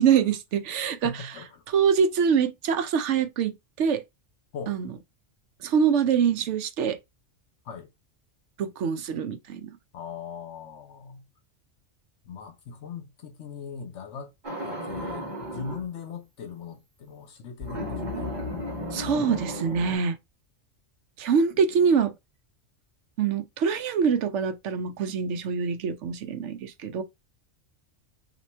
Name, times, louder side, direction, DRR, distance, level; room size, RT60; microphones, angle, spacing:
voice 1, 0.0-1.2 1.7-3.5 3.8-4.0 4.7-4.9 5.6-7.0 8.6-9.7 18.9-20.2 21.2-22.1 23.2-27.0, right 6 dB, 70° right, 0.9 m, -24 dB
voice 2, 1.0-1.6 4.5-4.8 7.6-7.9 9.9-11.2 12.2-14.3 14.6-18.3, left 6 dB, 70° left, 1.0 m, -40 dB
sound 1, 14.4-15.9 17.6-20.0, left 1 dB, 40° right, 1.4 m, -34 dB
3.0 x 2.9 x 4.2 m
omnidirectional pair, 1.3 m